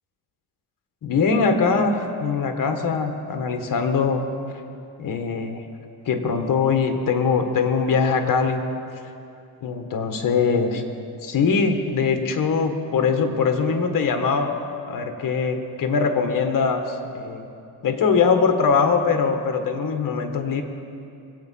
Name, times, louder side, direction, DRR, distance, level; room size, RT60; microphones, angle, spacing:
voice 1, 1.0-4.3 5.0-5.6 6.0-8.6 9.6-10.8 11.2-14.5 14.9-17.5 17.8-20.6, left 5 dB, 55° left, 6 dB, 1.5 m, -22 dB
22.5 x 8.4 x 5.6 m, 2.6 s
cardioid pair, 115°, 40 cm